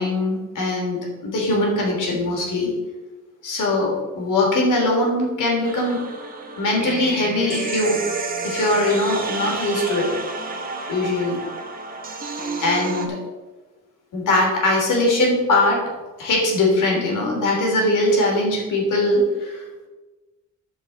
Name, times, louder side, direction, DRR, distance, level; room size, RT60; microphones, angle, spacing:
voice 1, 0.0-2.7 3.4-6.0 6.6-8.0 8.4-10.1 10.9-11.4 12.6-13.2 14.1-15.8 16.2-19.7, left 2 dB, 80° left, -1 dB, 3.5 m, -21 dB
sound 1, 5.6-13.1, right 3 dB, 30° right, 1.0 m, -30 dB
13.0 x 5.5 x 4.2 m, 1.2 s
wide cardioid pair, 165°, 31 cm